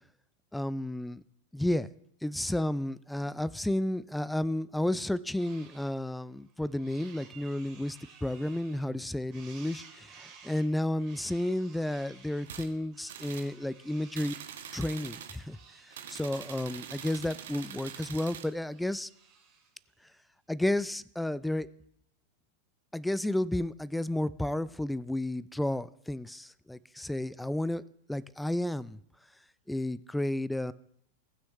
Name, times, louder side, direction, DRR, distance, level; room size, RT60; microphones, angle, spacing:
voice 1, 0.5-1.2 1.5-1.9 2.2-14.4 14.7-15.6 16.1-19.1 20.5-21.7 22.9-27.8 28.1-29.0 29.7-30.7, left 1 dB, 5° left, 19 dB, 0.4 m, -32 dB
sound 1, 5.4-5.9 6.4-9.0 9.3-19.8, right 6 dB, 40° right, 2.6 m, -56 dB
sound 2, 12.5-12.7 13.1-13.5 14.1-15.4 15.9-18.5, right 9 dB, 60° right, 0.8 m, -44 dB
18.5 x 6.3 x 3.1 m, 0.72 s
figure-of-eight pair, 90°, 0 cm